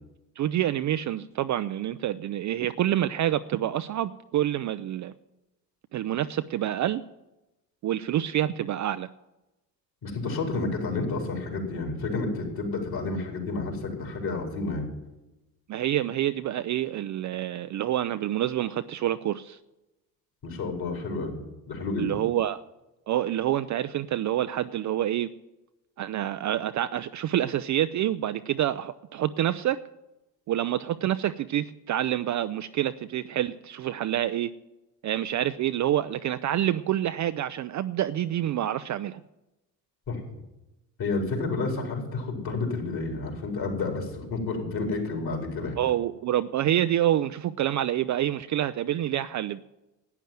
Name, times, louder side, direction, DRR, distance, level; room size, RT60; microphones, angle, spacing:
voice 1, 0.4-5.1 5.9-7.0 7.8-9.1 15.7-19.6 22.0-22.6 23.1-25.3 26.0-29.8 30.5-34.5 35.0-39.2 45.8-49.6, right 12 dB, 40° right, 11 dB, 0.5 m, -27 dB
voice 2, 10.0-14.9 20.4-21.4 21.7-22.2 40.1-40.2 41.0-45.8, left 3 dB, 45° left, 2 dB, 4.5 m, -30 dB
12.0 x 9.1 x 9.1 m, 0.97 s
hypercardioid pair, 60°, 49 cm